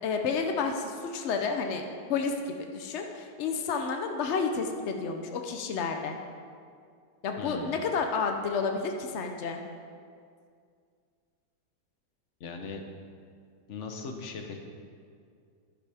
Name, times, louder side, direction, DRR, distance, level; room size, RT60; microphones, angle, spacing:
voice 1, 0.0-6.2 7.2-9.6, left 5 dB, 85° left, 4 dB, 0.6 m, -30 dB
voice 2, 7.4-7.7 12.4-12.8 13.7-14.6, left 4 dB, 50° left, 4 dB, 0.9 m, -38 dB
11.0 x 10.0 x 3.5 m, 2.2 s
omnidirectional pair, 2.1 m